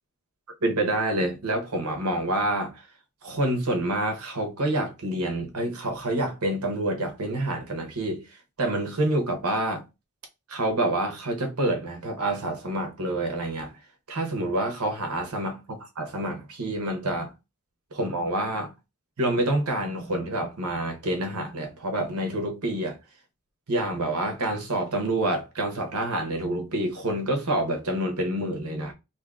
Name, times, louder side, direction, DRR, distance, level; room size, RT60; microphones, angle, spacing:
voice 1, 0.6-2.7 3.2-8.2 8.6-9.8 10.5-13.7 14.1-15.6 16.0-17.3 18.0-18.7 19.2-23.0 23.7-28.9, right 1 dB, 85° right, 1.0 m, -27 dB
2.8 x 2.7 x 3.5 m
head